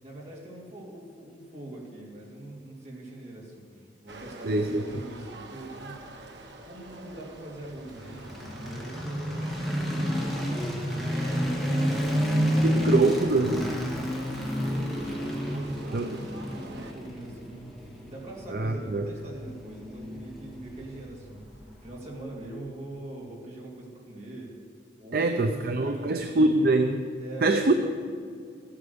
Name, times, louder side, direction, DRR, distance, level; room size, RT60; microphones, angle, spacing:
voice 1, 0.0-6.0 6.6-10.6 11.8-12.3 12.6-13.4 14.4-17.7 18.1-24.5 25.0-26.6 27.2-27.7, right 1 dB, 40° right, -3 dB, 2.7 m, -43 dB
sound 1, 4.1-16.9, right 2 dB, 75° right, 1.2 m, -46 dB
voice 2, 4.4-4.8 12.6-13.6 15.9-16.2 18.5-19.1 25.1-27.0 27.4-27.7, right 2 dB, 55° right, 5 dB, 0.6 m, -24 dB
sound 2, 7.9-22.0, equal, ahead, 2.0 m, -30 dB
13.5 x 8.7 x 6.9 m, 2.1 s
head